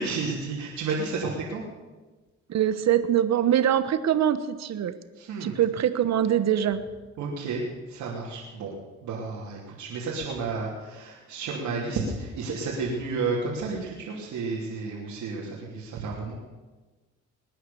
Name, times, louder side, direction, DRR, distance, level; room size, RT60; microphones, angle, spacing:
voice 1, 0.0-1.6 5.2-5.5 7.2-8.7 9.0-16.3, right 4 dB, 80° right, -5 dB, 3.1 m, -31 dB
voice 2, 2.5-4.9 5.4-6.8, right 10 dB, 60° right, 12 dB, 1.1 m, -23 dB
21.0 x 9.3 x 7.0 m, 1.2 s
cardioid pair, 90°, 30 cm